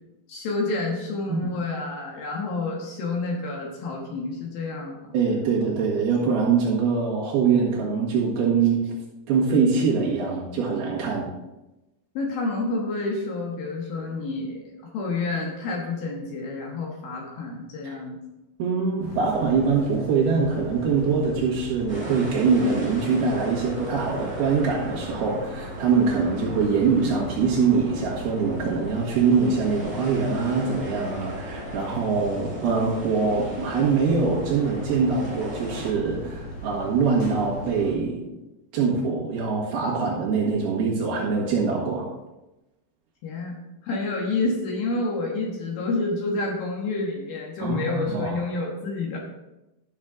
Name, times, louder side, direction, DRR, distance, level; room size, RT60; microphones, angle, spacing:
voice 1, 0.3-5.1 12.1-18.2 43.2-43.6 43.8-49.2, left 3 dB, 65° left, -1 dB, 2.5 m, -29 dB
voice 2, 5.1-8.8 9.3-11.3 17.8-17.9 18.6-38.2 38.7-42.1 47.6-48.4, right 5 dB, 65° right, -4 dB, 3.2 m, -23 dB
sound 1, 19.0-37.9, equal, 40° left, 3.2 m, -39 dB
sound 2, 21.9-35.9, equal, 10° right, 1.6 m, -38 dB
12.0 x 6.3 x 3.8 m, 0.99 s
omnidirectional pair, 5.6 m